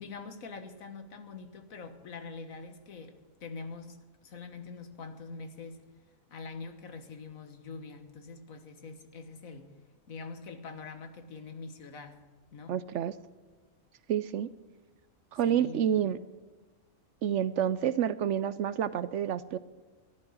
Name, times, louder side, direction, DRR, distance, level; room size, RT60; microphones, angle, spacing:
voice 1, 0.0-5.8 6.3-9.7 10.1-12.2 12.5-12.8 15.4-15.8, left 4 dB, 80° left, 8 dB, 1.7 m, -44 dB
voice 2, 12.7-13.1 14.1-14.5 15.3-16.2 17.2-19.6, right 9 dB, 70° right, 15 dB, 0.8 m, -28 dB
13.5 x 11.5 x 6.3 m, 1.3 s
omnidirectional pair, 1.4 m